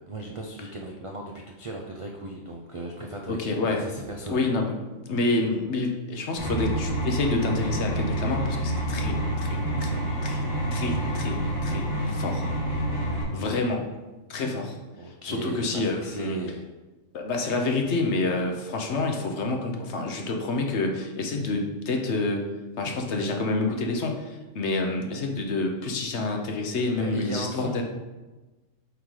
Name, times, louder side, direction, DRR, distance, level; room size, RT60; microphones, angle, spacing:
voice 1, 0.0-4.4 15.0-16.6 27.0-27.8, right 2 dB, 55° right, 0 dB, 0.3 m, -36 dB
voice 2, 3.3-3.9 4.3-10.0 10.2-10.4 10.7-12.4 13.3-13.9 14.3-14.8 15.2-16.4 17.1-22.4 22.8-27.8, left 3 dB, 60° left, 2 dB, 1.1 m, -28 dB
sound 1, 6.4-13.2, right 1 dB, 80° left, 2.6 m, -28 dB
8.1 x 3.8 x 3.2 m, 1.2 s
omnidirectional pair, 1.4 m